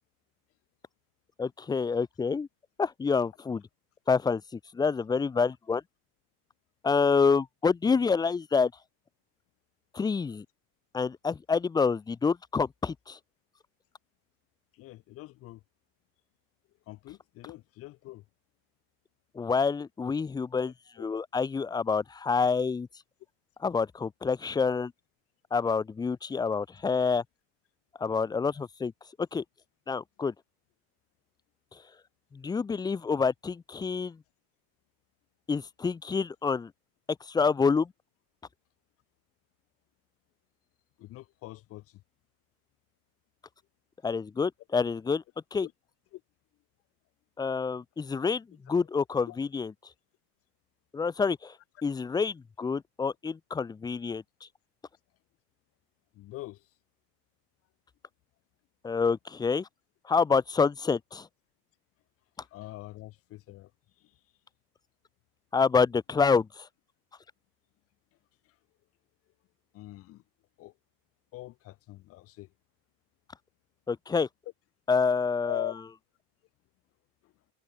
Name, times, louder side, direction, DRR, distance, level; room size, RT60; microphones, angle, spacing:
voice 1, 1.4-2.5 2.8-3.6 4.1-5.8 6.8-8.7 9.9-10.4 10.9-13.2 19.3-20.7 21.0-22.9 23.6-24.9 25.5-27.2 28.0-28.9 29.3-29.4 29.9-30.3 32.3-34.2 35.5-36.7 37.3-37.9 44.0-45.2 45.5-45.7 47.4-49.7 50.9-51.5 51.8-54.2 58.8-59.7 60.1-61.3 65.5-66.7 73.9-74.3 74.9-75.7, left 5 dB, 15° left, 0.9 m, -27 dB
voice 2, 14.7-15.6 16.9-18.2 20.6-21.1 41.0-42.0 45.6-45.7 46.1-46.2 49.3-49.4 56.1-56.7 62.4-63.7 64.0-64.2 68.4-68.6 69.7-70.2 70.6-70.7 71.3-72.5 75.4-75.8 77.2-77.3, left 17 dB, 50° left, 5.8 m, -43 dB
cardioid pair, 150°, 30 cm